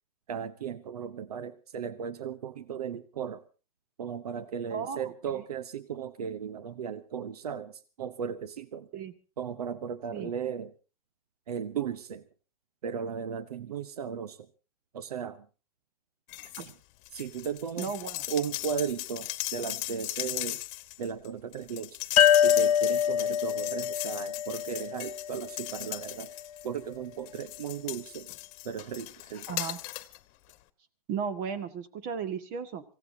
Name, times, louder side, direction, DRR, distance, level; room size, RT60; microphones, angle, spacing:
voice 1, 0.3-3.4 4.0-8.9 9.4-10.7 11.5-12.2 12.8-14.5 14.9-15.5 16.6-16.7 17.1-17.9 18.3-20.6 21.0-22.0 22.4-26.3 26.6-28.3 28.6-29.5, right 7 dB, 90° right, 14 dB, 0.9 m, -36 dB
voice 2, 4.7-5.4 8.9-9.1 10.1-10.3 16.6-16.7 17.8-18.2 29.5-29.8 31.1-32.8, right 6 dB, 45° right, 10 dB, 1.9 m, -35 dB
sound 1, 16.3-16.7 17.0-26.8 27.3-30.2 30.5-30.6, left 19 dB, 45° left, 1.2 m, -38 dB
sound 2, 22.2-25.6, left 10 dB, 75° left, 0.9 m, -25 dB
26.5 x 16.5 x 2.8 m, 0.33 s
hypercardioid pair, 125°, 19 cm